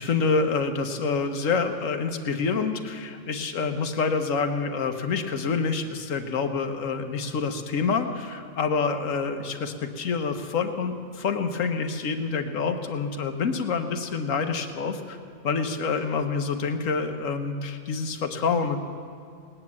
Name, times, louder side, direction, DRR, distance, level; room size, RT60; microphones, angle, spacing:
voice 1, 0.0-15.2 15.4-18.8, left 5 dB, 85° left, 6 dB, 1.4 m, -27 dB
19.0 x 10.0 x 7.2 m, 2.4 s
omnidirectional pair, 1.3 m